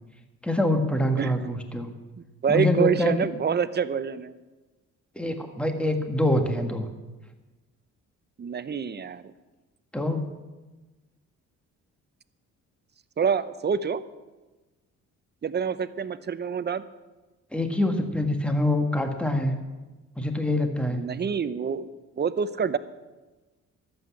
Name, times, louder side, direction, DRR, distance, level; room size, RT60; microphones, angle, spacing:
voice 1, 0.4-1.9 2.5-3.2 5.1-6.9 9.9-10.3 17.5-19.5 20.2-21.0, left 1 dB, 5° left, 6 dB, 1.6 m, -25 dB
voice 2, 1.2-1.6 2.4-4.4 8.4-9.3 13.2-14.1 15.4-16.8 20.9-21.9 22.2-22.8, right 6 dB, 35° right, 14 dB, 0.7 m, -27 dB
12.5 x 8.0 x 8.3 m, 1.2 s
cardioid pair, 90°, 30 cm